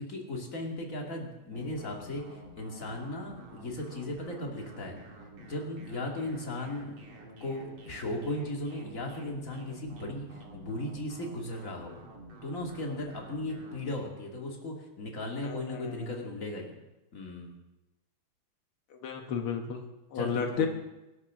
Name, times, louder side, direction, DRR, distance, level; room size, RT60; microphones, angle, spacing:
voice 1, 0.0-5.0 5.4-7.1 7.4-11.9 12.4-16.8 17.1-17.5 20.1-20.7, left 1 dB, 40° left, 0 dB, 2.9 m, -36 dB
sound 1, 1.5-13.9, right 1 dB, 75° right, 3.2 m, -50 dB
voice 2, 15.4-16.2 18.9-20.7, left 6 dB, 85° left, 3 dB, 2.1 m, -34 dB
24.0 x 12.5 x 3.8 m, 0.99 s
omnidirectional pair, 2.3 m